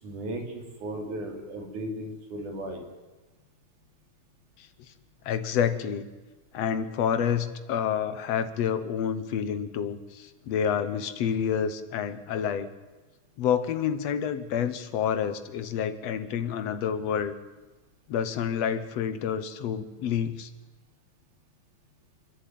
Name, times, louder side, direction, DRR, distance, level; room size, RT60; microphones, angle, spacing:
voice 1, 0.0-2.9, right 1 dB, 75° right, 2 dB, 4.6 m, -36 dB
voice 2, 5.3-6.1 6.5-12.7 13.4-17.3 18.1-20.5, left 8 dB, 60° left, 11 dB, 2.1 m, -28 dB
28.0 x 11.0 x 9.4 m, 1.2 s
omnidirectional pair, 3.6 m